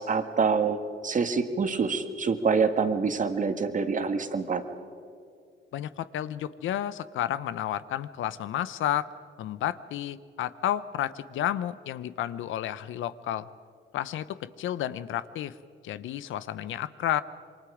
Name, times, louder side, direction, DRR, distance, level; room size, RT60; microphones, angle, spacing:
voice 1, 0.0-4.6, right 5 dB, 40° right, 7 dB, 1.8 m, -26 dB
voice 2, 5.7-9.1 9.4-13.5 13.9-15.6 15.8-17.2, left 11 dB, 80° left, 15 dB, 0.8 m, -31 dB
27.5 x 23.0 x 5.0 m, 2.4 s
cardioid pair, 90°, 20 cm